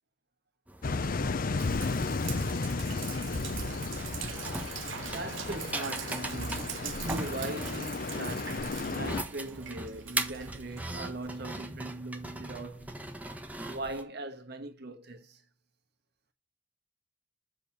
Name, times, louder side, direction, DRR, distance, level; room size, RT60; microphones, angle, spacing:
sound 1, 0.7-14.0, right 1 dB, 10° right, 1.3 m, -41 dB
sound 2, 0.8-9.2, left 3 dB, 50° left, 0.6 m, -34 dB
Sink (filling or washing), 1.6-11.3, right 7 dB, 90° right, 0.9 m, -42 dB
voice 1, 5.0-13.0 13.7-15.4, right 2 dB, 60° right, 1.5 m, -40 dB
7.9 x 6.6 x 4.2 m
head